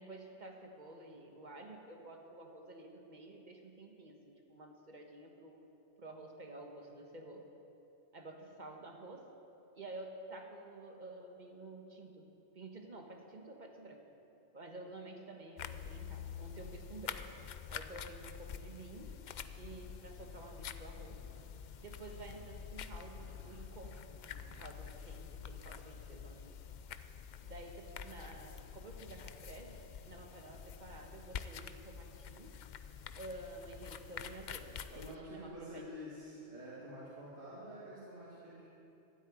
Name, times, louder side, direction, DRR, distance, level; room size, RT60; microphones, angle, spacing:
voice 1, 0.0-5.6 6.0-7.5 8.1-9.3 9.7-12.3 12.5-14.0 14.5-17.3 17.7-19.2 19.5-21.2 21.8-26.6 27.4-32.5 33.1-36.1, right 2 dB, 40° right, 3 dB, 1.5 m, -51 dB
sound 1, 15.6-35.2, left 7 dB, 55° left, 0.5 m, -47 dB
sound 2, 18.7-18.8 19.4-21.5 22.1-22.6 23.0-23.7 24.2-24.7 25.2-25.8, right 1 dB, 90° right, 2.9 m, -62 dB
voice 2, 34.9-38.6, equal, 75° right, -9 dB, 2.7 m, -48 dB
13.0 x 8.2 x 9.3 m, 2.9 s
omnidirectional pair, 1.2 m